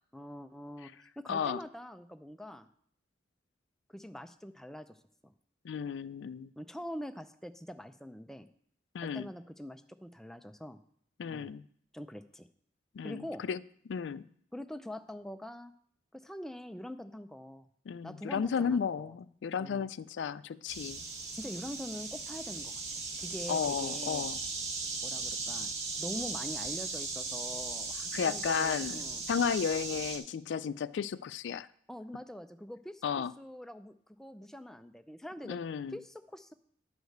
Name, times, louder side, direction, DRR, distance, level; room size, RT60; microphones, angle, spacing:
voice 1, 0.1-2.7 3.9-5.0 5.2-5.3 6.6-8.5 9.0-10.8 11.3-11.5 11.9-12.5 13.0-13.4 14.5-15.7 16.1-17.7 18.0-19.2 19.6-19.9 21.3-22.8 23.2-24.3 25.0-29.2 31.9-35.6 35.9-36.5, equal, ahead, 8 dB, 0.4 m, -44 dB
voice 2, 1.3-1.6 5.6-6.5 8.9-9.3 11.2-11.6 13.0-13.6 13.9-14.2 17.9-21.0 23.5-24.4 28.1-29.0 29.3-31.7 33.0-33.3 35.5-36.0, left 6 dB, 90° left, 16 dB, 0.3 m, -33 dB
sound 1, 20.7-30.2, right 4 dB, 40° right, 1.4 m, -38 dB
10.5 x 4.8 x 6.5 m, 0.63 s
head